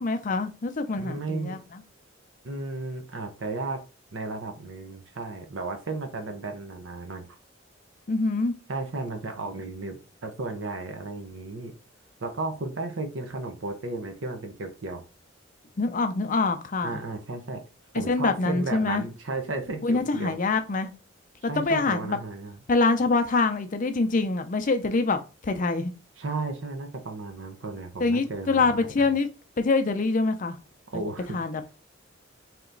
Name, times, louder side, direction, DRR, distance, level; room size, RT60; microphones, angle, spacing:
voice 1, 0.0-1.8 8.1-8.5 15.8-17.0 18.1-19.0 19.8-20.9 21.4-22.2 22.7-25.9 28.0-29.3 29.6-30.6 31.3-31.6, left 3 dB, 40° left, 0.5 m, -25 dB
voice 2, 1.0-1.6 2.4-3.8 4.1-7.3 8.7-11.7 12.2-15.0 16.8-17.6 17.9-20.4 21.5-22.6 26.2-29.1 30.9-31.4, right 3 dB, 70° right, 0.7 m, -34 dB
3.4 x 2.9 x 3.8 m
head